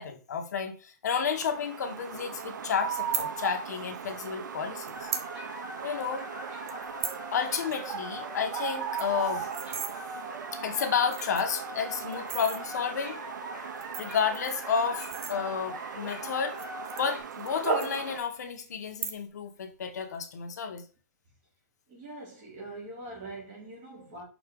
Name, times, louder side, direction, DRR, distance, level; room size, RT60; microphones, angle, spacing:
voice 1, 0.0-5.1 5.8-6.3 7.3-9.5 10.6-13.2 14.0-16.6 17.0-20.9, left 6 dB, 65° left, 1.3 m, -31 dB
sound 1, 1.2-18.2, right 8 dB, 85° right, 0.7 m, -38 dB
sound 2, 3.0-3.3 4.2-4.3 4.8-5.3 5.7-5.8 6.0-6.2 6.7-7.2 7.6-7.7 8.0-8.1 8.4-8.5 8.8-9.9 10.6-10.7 11.0-11.6 12.1-12.6 13.6-15.8 16.4-17.5 17.8-18.4 18.9-19.5 19.7-20.2, right 7 dB, 50° right, 0.9 m, -37 dB
sound 3, 4.9-17.2, equal, 15° right, 1.9 m, -42 dB
voice 2, 21.9-24.2, right 2 dB, 30° right, 2.6 m, -43 dB
6.2 x 4.4 x 3.7 m
hypercardioid pair, 175°, 10 cm